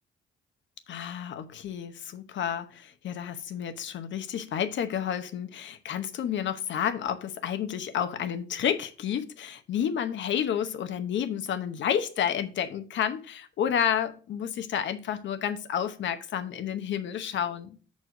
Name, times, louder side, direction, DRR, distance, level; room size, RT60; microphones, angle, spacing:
voice 1, 0.9-17.8, left 9 dB, 70° left, 0.9 m, -30 dB
6.2 x 4.3 x 5.8 m
cardioid pair, 90°, 20 cm